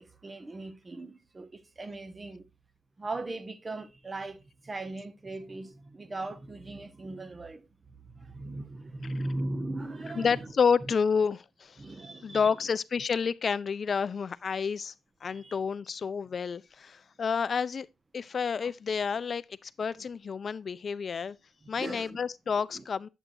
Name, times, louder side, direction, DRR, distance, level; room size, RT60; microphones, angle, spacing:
voice 1, 0.0-2.5 3.0-10.4 11.8-12.4 15.3-15.6 21.7-22.2 22.7-22.8, right 2 dB, 30° right, 0.9 m, -39 dB
voice 2, 10.1-11.8 12.2-14.9 15.2-17.9 18.1-21.4 21.7-23.1, left 6 dB, 55° left, 0.3 m, -29 dB
7.9 x 7.4 x 2.6 m
supercardioid pair, 60°, 0 cm